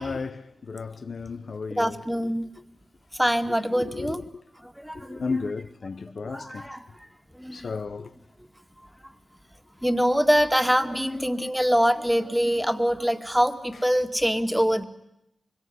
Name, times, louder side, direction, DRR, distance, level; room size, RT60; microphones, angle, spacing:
voice 1, 0.0-2.0 3.7-4.2 4.9-6.7 7.5-8.1, left 4 dB, 65° left, 1.0 m, -33 dB
voice 2, 1.8-2.5 3.1-4.2 4.6-5.2 6.3-7.1 7.3-7.7 9.0-9.1 9.8-14.8, equal, 5° right, 2.2 m, -24 dB
25.0 x 23.5 x 9.8 m
cardioid pair, 60°, 0 cm